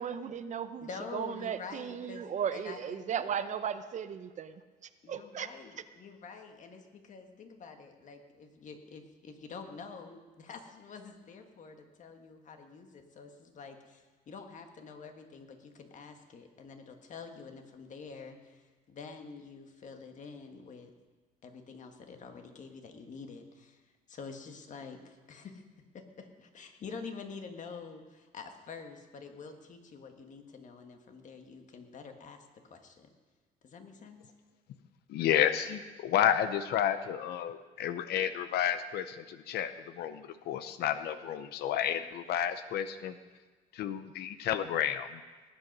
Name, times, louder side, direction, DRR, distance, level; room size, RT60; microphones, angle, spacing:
voice 1, 0.0-4.5 5.1-5.5, right 8 dB, 45° right, 11 dB, 0.7 m, -36 dB
voice 2, 0.8-3.5 5.0-20.9 21.4-23.8 24.1-33.1 33.6-34.2, left 5 dB, 45° left, 5 dB, 1.7 m, -47 dB
voice 3, 35.1-43.1 43.7-45.2, left 10 dB, 75° left, 11 dB, 0.7 m, -31 dB
19.0 x 8.0 x 5.4 m, 1.3 s
cardioid pair, 110°, 17 cm